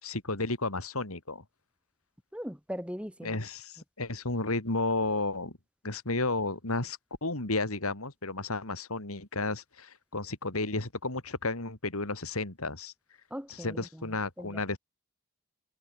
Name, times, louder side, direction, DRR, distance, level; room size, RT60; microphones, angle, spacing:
voice 1, 0.0-1.4 3.2-5.5 5.8-12.9 13.6-14.8, left 2 dB, 80° left, 3.2 m, -32 dB
voice 2, 2.3-3.4 13.3-14.6, equal, 5° right, 7.8 m, -40 dB
head